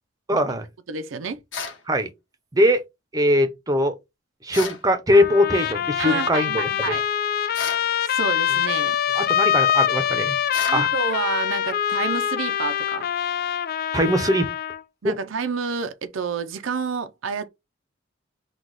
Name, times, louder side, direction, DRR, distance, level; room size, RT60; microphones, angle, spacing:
voice 1, 0.3-0.6 1.9-2.1 2.5-2.8 3.1-3.9 4.4-6.6 9.1-10.4 10.7-10.9 13.9-14.5 15.0-15.1, left 1 dB, 20° right, 0.7 m, -21 dB
voice 2, 0.9-1.4 6.0-7.1 8.1-9.0 10.6-13.1 15.0-17.5, right 5 dB, 85° right, 0.6 m, -29 dB
sound 1, 1.5-1.8 4.5-4.8 7.5-7.9 10.5-10.8, left 5 dB, 70° left, 1.2 m, -32 dB
Trumpet, 5.1-14.8, left 9 dB, 50° left, 0.4 m, -24 dB
4.0 x 2.3 x 4.7 m
head